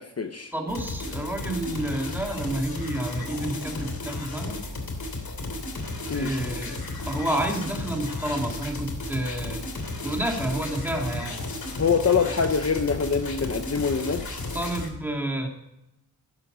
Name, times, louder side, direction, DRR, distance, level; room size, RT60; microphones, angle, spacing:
voice 1, 0.0-0.5 6.1-6.3 11.8-14.3, left 6 dB, 40° left, 7 dB, 0.8 m, -24 dB
voice 2, 0.5-4.6 6.1-6.8 7.1-9.7 10.0-11.4 14.5-15.5, right 1 dB, 5° right, 1 dB, 2.5 m, -29 dB
sound 1, 0.7-14.9, left 2 dB, 70° left, 2.8 m, -34 dB
13.5 x 11.0 x 3.9 m, 0.88 s
wide cardioid pair, 130°, 38 cm